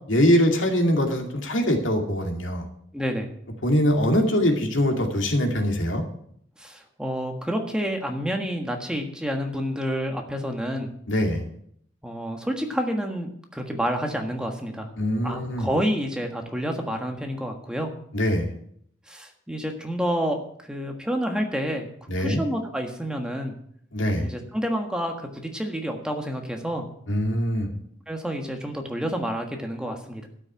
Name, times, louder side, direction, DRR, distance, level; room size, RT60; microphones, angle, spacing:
voice 1, 0.1-2.7 3.6-6.0 11.1-11.4 15.0-15.7 18.1-18.5 22.1-22.4 23.9-24.3 27.1-27.7, equal, 85° left, 3 dB, 2.4 m, -22 dB
voice 2, 2.9-3.3 6.6-10.9 12.0-14.9 15.2-17.9 19.1-21.9 22.2-23.5 24.2-26.9 28.1-30.3, equal, 5° right, 3 dB, 1.5 m, -29 dB
12.5 x 6.5 x 8.7 m, 0.67 s
head